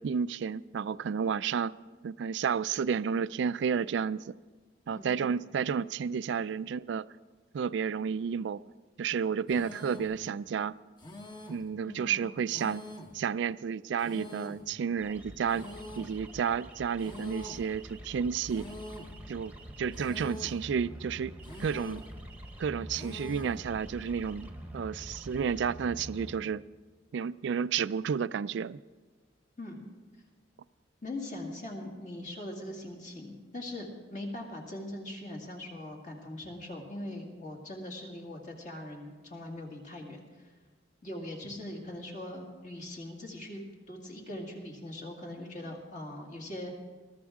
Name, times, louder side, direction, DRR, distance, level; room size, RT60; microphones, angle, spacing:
voice 1, 0.0-1.7 2.0-4.3 4.9-7.1 7.5-8.6 9.0-10.7 11.5-12.8 13.1-15.7 16.0-18.7 19.3-19.5 19.8-21.3 21.6-22.0 22.6-26.6 27.1-28.8, right 6 dB, 70° right, 0.3 m, -31 dB
voice 2, 4.9-5.3 11.9-12.3 29.6-29.9 31.0-40.5 41.0-43.6 43.9-46.7, left 1 dB, 40° left, 2.2 m, -41 dB
sound 1, 9.5-10.2 11.0-11.7 12.5-13.2 14.0-14.7 15.5-16.2 17.0-17.7 18.5-19.2 19.9-20.6 21.4-22.1 22.9-23.6, left 1 dB, 25° left, 1.2 m, -45 dB
sound 2, 15.0-26.4, right 1 dB, 10° right, 1.0 m, -46 dB
20.5 x 13.5 x 3.6 m
head